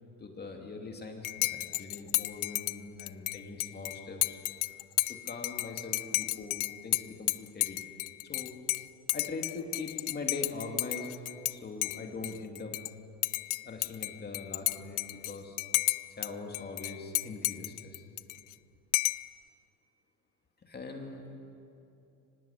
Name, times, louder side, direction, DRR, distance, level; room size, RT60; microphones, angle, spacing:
voice 1, 0.2-4.4 5.1-7.8 8.2-8.5 9.1-11.2 11.5-12.7 13.6-15.6 16.2-18.0 20.7-21.2, left 3 dB, 20° left, 3 dB, 2.6 m, -42 dB
Dishes pots and pans / Cutlery silverware / Chink clink, 1.2-11.5 11.8-12.9 13.2-16.3 16.5-18.5 18.9-19.3, left 22 dB, 45° left, 0.5 m, -32 dB
24.5 x 19.5 x 8.3 m, 2.7 s
supercardioid pair, 130°, 46 cm